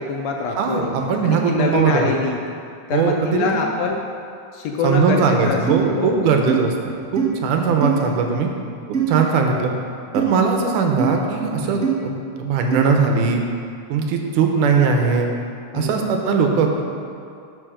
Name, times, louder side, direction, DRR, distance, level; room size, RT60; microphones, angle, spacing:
voice 1, 0.0-0.9 1.2-2.4 2.9-4.1 4.5-6.3 11.6-11.9 15.7-16.1, left 4 dB, 80° left, 1 dB, 1.5 m, -25 dB
voice 2, 0.6-2.1 2.9-3.5 4.8-8.5 8.9-9.7 10.1-13.4 13.9-15.3 15.7-16.8, right 5 dB, 80° right, 3 dB, 2.3 m, -20 dB
sound 1, 5.7-5.8 6.5-6.6 7.2-7.3 7.8-8.0 8.9-9.2 10.1-10.3 11.0-11.1 11.8-11.9 12.7-12.9, right 8 dB, 40° right, 1.3 m, -21 dB
12.5 x 5.0 x 5.0 m, 2.5 s
omnidirectional pair, 3.7 m